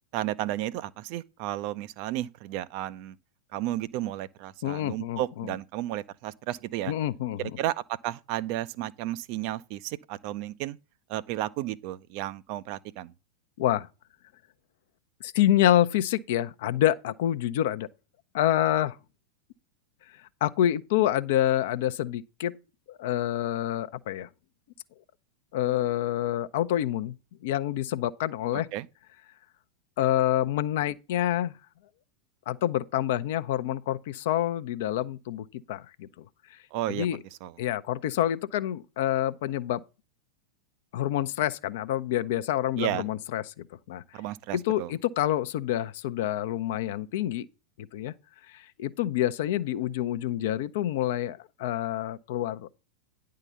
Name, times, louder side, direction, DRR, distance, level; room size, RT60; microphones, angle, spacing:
voice 1, 0.1-3.2 3.5-6.9 7.4-10.8 11.1-13.1 28.5-28.9 36.7-37.1 37.4-37.5 42.8-43.1 44.1-44.9, right 14 dB, 45° right, 0.5 m, -33 dB
voice 2, 4.6-5.5 6.9-7.4 13.6-13.9 15.2-17.9 18.3-19.0 20.4-22.5 22.9-24.3 25.5-27.1 27.4-28.7 30.0-31.5 32.5-36.1 36.5-36.6 36.9-37.2 37.6-39.8 40.9-44.0 44.5-47.5 47.8-48.1 48.5-52.8, left 12 dB, 55° left, 0.6 m, -27 dB
9.8 x 3.7 x 6.8 m
figure-of-eight pair, 90°, 0 cm